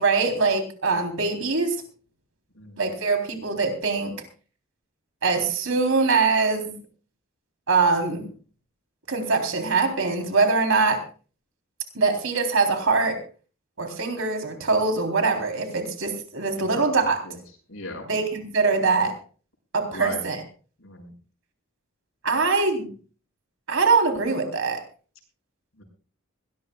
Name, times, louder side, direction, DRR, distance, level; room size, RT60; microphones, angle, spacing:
voice 1, 0.0-1.8 2.8-4.1 5.2-6.8 7.7-8.3 9.1-11.0 11.9-13.2 13.8-17.2 18.1-19.2 19.7-20.4 22.2-22.9 23.7-24.8, right 4 dB, 70° right, 5 dB, 3.6 m, -23 dB
voice 2, 2.5-2.9 16.9-17.4 17.7-18.1 19.9-20.2 20.8-21.1 25.8-25.9, left 2 dB, 75° left, 2 dB, 6.3 m, -38 dB
21.5 x 18.5 x 2.4 m, 0.38 s
head